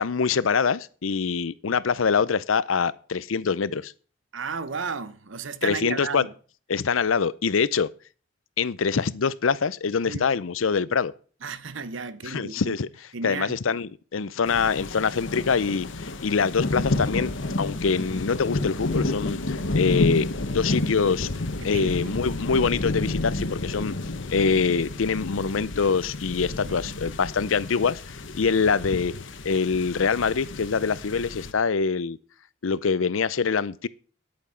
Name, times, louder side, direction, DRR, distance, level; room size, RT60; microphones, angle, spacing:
voice 1, 0.0-3.9 5.6-6.3 6.7-7.9 8.6-11.1 12.2-12.9 13.2-17.3 17.6-21.3 21.6-23.9 24.3-29.1 29.4-32.2 32.6-33.9, left 5 dB, 90° left, 0.6 m, -24 dB
voice 2, 4.3-6.3 10.0-10.3 11.4-12.7 13.1-13.6 21.6-22.1 26.6-27.0, right 5 dB, 75° right, 0.8 m, -34 dB
sound 1, 14.5-31.5, left 2 dB, 75° left, 1.2 m, -30 dB
10.5 x 8.7 x 5.7 m
head